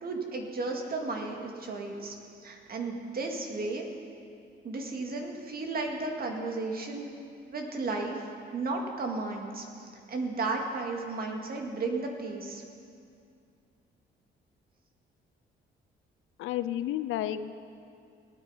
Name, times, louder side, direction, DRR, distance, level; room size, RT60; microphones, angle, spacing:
voice 1, 0.0-3.8 4.6-7.1 7.4-12.6, right 3 dB, 50° right, 2 dB, 2.1 m, -34 dB
voice 2, 16.4-17.5, left 12 dB, 90° left, 12 dB, 0.5 m, -31 dB
18.0 x 9.3 x 5.7 m, 2.4 s
cardioid pair, 90°, 20 cm